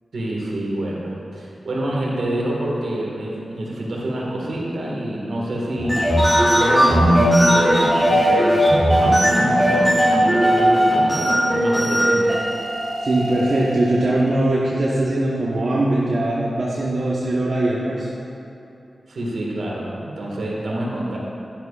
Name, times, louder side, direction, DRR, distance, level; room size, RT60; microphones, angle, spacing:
voice 1, 0.1-6.1 6.5-8.6 9.0-12.3 19.1-21.2, right 1 dB, 80° right, -3 dB, 1.8 m, -27 dB
sound 1, 5.8-14.0, equal, 5° left, 2.2 m, -17 dB
voice 2, 13.0-18.1, right 1 dB, 65° right, -7 dB, 1.1 m, -21 dB
11.0 x 10.5 x 2.5 m, 2.8 s
cardioid pair, 50°, 0 cm